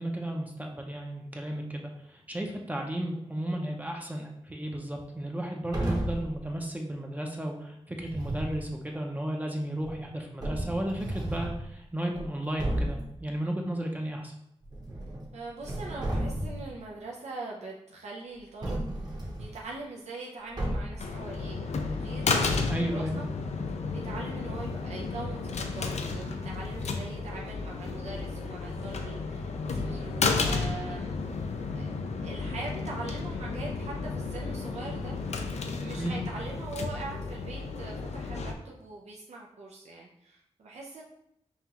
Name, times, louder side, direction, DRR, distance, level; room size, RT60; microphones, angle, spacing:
voice 1, 0.0-14.3 22.7-23.2 36.0-36.2, right 1 dB, 15° right, 1 dB, 0.5 m, -34 dB
sound 1, 5.7-6.3 8.0-8.6 9.8-9.9 10.4-11.6 12.1-12.2 12.6-13.1 14.6-15.3 15.6-16.7 18.6-19.6 20.6-21.1, right 1 dB, 35° right, 0.9 m, -32 dB
voice 2, 15.3-22.6 22.9-23.2 23.9-41.0, right 3 dB, 85° right, -2 dB, 0.5 m, -42 dB
sound 2, 21.0-38.5, left 4 dB, 85° left, 0.4 m, -32 dB
5.5 x 2.4 x 2.9 m, 0.77 s
wide cardioid pair, 95°, 11 cm